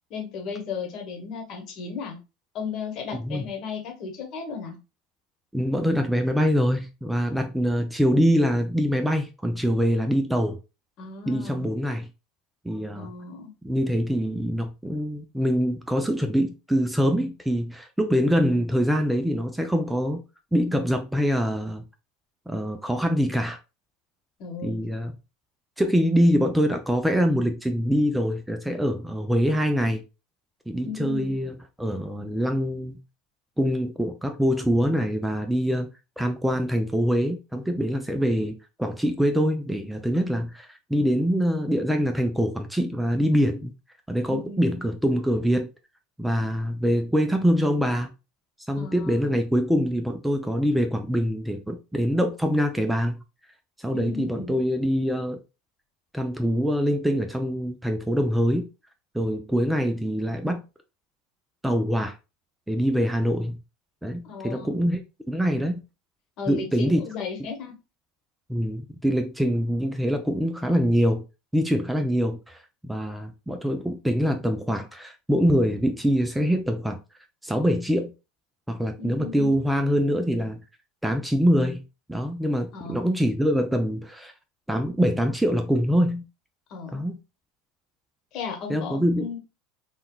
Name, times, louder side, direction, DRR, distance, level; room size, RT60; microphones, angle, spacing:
voice 1, 0.1-2.2 2.5-4.7 11.0-11.7 12.9-13.5 24.4-24.7 30.8-31.4 44.3-44.8 48.7-49.4 53.9-54.6 64.2-64.7 66.4-67.7 79.0-79.5 82.7-83.0 86.7-87.0 88.3-89.4, left 5 dB, 55° left, 1.0 m, -35 dB
voice 2, 5.5-10.6 11.3-12.1 12.6-13.1 13.6-20.2 20.5-21.8 22.5-23.6 24.6-25.1 25.8-30.0 30.7-33.0 33.6-35.9 36.2-43.7 44.1-45.7 46.2-48.1 48.7-53.2 53.8-55.4 56.1-58.7 59.1-60.6 61.6-62.2 62.7-63.6 64.0-65.0 65.3-65.8 66.5-67.0 68.5-71.2 71.5-77.0 77.4-78.1 78.7-80.6 81.0-81.8 82.1-84.3 84.7-86.2 86.9-87.2 88.7-89.3, equal, 5° right, 0.4 m, -24 dB
3.7 x 2.2 x 2.2 m
hypercardioid pair, 95°, 0 cm